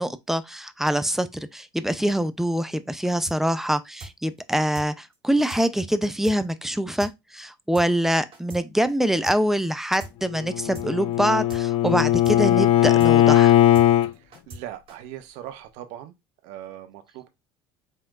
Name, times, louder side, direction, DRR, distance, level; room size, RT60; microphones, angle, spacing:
voice 1, 0.0-13.5, equal, 5° right, 0.5 m, -24 dB
sound 1, 3.3-3.4 3.6-3.7 4.0-4.1 4.4-4.5 4.7-4.9 5.1-5.2 5.5-5.6 5.9-6.0 6.2-6.4 6.6-6.7 7.0-7.1 7.4-7.5 7.7-8.6 8.9-9.0 9.2-9.4 9.6-9.7 10.0-10.1 10.4-10.5 10.7-10.9 11.1-11.2 11.5-11.6 11.9-12.0 12.2-12.4 12.6-12.7 13.0-13.1 13.4-13.5 13.7-13.9 14.1-14.6 14.9-15.0, right 2 dB, 45° right, 2.1 m, -40 dB
Bowed string instrument, 10.3-14.1, left 12 dB, 45° left, 0.5 m, -18 dB
voice 2, 14.2-16.1 16.4-17.3, right 12 dB, 65° right, 0.7 m, -40 dB
5.3 x 3.5 x 2.4 m
hypercardioid pair, 70°, 13 cm